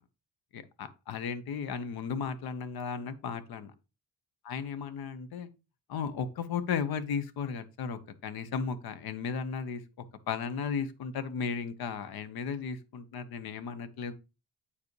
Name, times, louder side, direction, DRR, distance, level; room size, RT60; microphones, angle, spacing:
voice 1, 0.5-3.7 4.4-5.5 5.9-9.8 10.3-14.1, left 6 dB, 70° left, 13 dB, 0.9 m, -35 dB
8.5 x 4.7 x 3.1 m, 0.29 s
cardioid pair, 130°, 38 cm